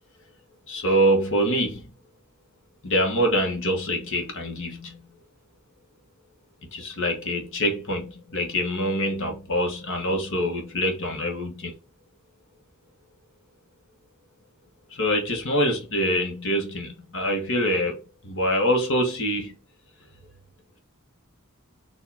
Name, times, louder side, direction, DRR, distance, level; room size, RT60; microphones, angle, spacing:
voice 1, 0.7-1.8 2.8-5.1 6.7-11.8 14.9-19.6, equal, 60° left, 1.3 m, -25 dB
4.8 x 2.8 x 3.5 m
head